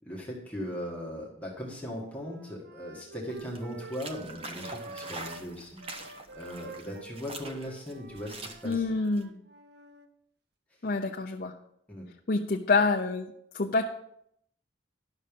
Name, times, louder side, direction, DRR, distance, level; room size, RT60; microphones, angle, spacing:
voice 1, 0.0-5.8 6.1-8.8 11.9-12.0, equal, 5° left, -3 dB, 1.6 m, -39 dB
Wind instrument woodwind instrument, 1.6-5.5 5.8-10.1, right 3 dB, 55° right, 0.8 m, -48 dB
sound 1, 3.3-9.2, right 2 dB, 30° right, 1.0 m, -44 dB
voice 2, 8.6-9.4 10.8-11.5 12.3-13.9, left 3 dB, 50° left, 2 dB, 0.7 m, -27 dB
11.0 x 6.7 x 5.3 m, 0.73 s
head